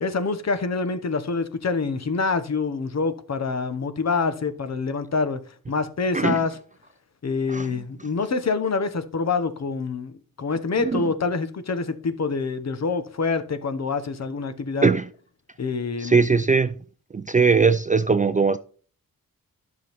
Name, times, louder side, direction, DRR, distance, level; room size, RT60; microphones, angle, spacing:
voice 1, 0.0-5.4 5.7-6.6 7.2-14.9 15.6-16.2, left 4 dB, 45° left, 1.0 m, -26 dB
voice 2, 16.0-16.7 17.1-18.6, right 5 dB, 25° right, 0.3 m, -20 dB
12.0 x 6.2 x 3.5 m
wide cardioid pair, 120°, 36 cm